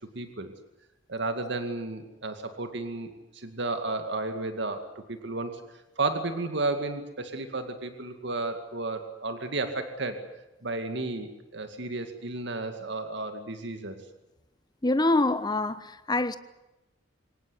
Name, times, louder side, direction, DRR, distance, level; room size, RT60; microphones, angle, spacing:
voice 1, 0.1-0.5 1.1-5.6 6.0-10.2 10.6-14.0, right 2 dB, 65° right, 2.3 m, -33 dB
voice 2, 14.8-16.4, left 2 dB, 20° left, 1.1 m, -25 dB
24.0 x 19.0 x 9.9 m
head